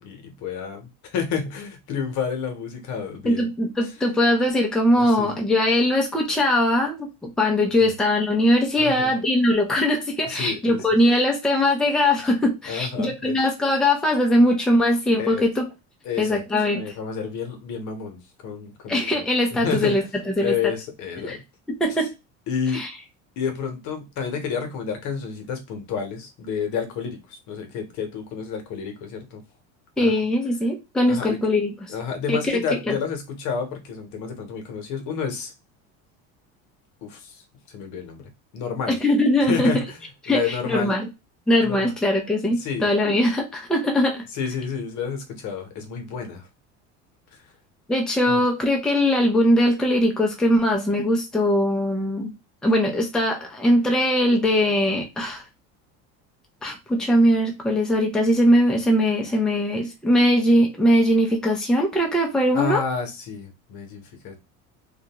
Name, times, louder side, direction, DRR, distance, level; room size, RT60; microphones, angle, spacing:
voice 1, 0.0-3.5 5.0-5.3 7.8-7.9 8.8-9.1 10.3-10.8 12.7-13.4 15.2-15.4 16.0-16.4 16.7-19.2 19.5-20.0 20.4-21.4 22.0-22.1 22.5-22.8 23.4-29.4 30.0-30.1 31.1-31.4 31.9-35.5 37.0-37.4 37.7-39.0 39.4-40.0 40.3-41.0 41.6-41.9 42.6-42.9 44.3-46.5 47.3-47.4 48.3-48.4 62.5-64.4, left 6 dB, 60° left, 1.0 m, -30 dB
voice 2, 3.2-15.6 16.2-16.9 18.9-20.5 21.2-21.4 21.8-22.1 22.7-22.9 30.0-31.9 32.3-32.6 32.9-33.0 38.9-39.7 40.2-41.1 41.5-44.3 47.9-52.3 52.6-55.4 56.6-62.8, left 1 dB, ahead, 0.5 m, -21 dB
2.5 x 2.2 x 2.9 m
supercardioid pair, 120°, 33 cm